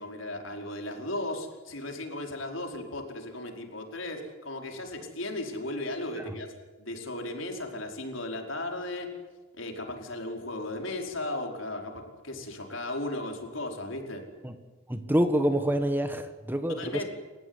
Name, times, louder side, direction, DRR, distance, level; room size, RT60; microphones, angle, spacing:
voice 1, 0.0-6.5 6.8-9.1 9.6-14.2 16.7-17.0, left 1 dB, 70° left, 3 dB, 4.9 m, -36 dB
voice 2, 14.9-17.0, equal, 10° right, 8 dB, 1.6 m, -26 dB
29.0 x 15.5 x 9.8 m, 1.3 s
head